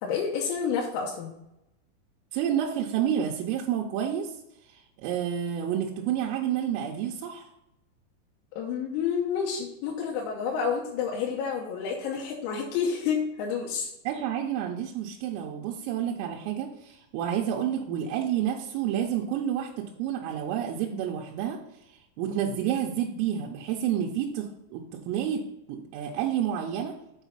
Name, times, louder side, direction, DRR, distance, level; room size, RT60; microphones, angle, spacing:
voice 1, 0.0-1.4 8.5-13.9 22.3-22.5, left 6 dB, 90° left, -1 dB, 3.7 m, -29 dB
voice 2, 2.3-4.3 4.7-7.5 14.1-21.6 22.2-26.9, right 9 dB, 85° right, -1 dB, 3.3 m, -29 dB
8.2 x 4.3 x 5.5 m, 0.87 s
omnidirectional pair, 6.0 m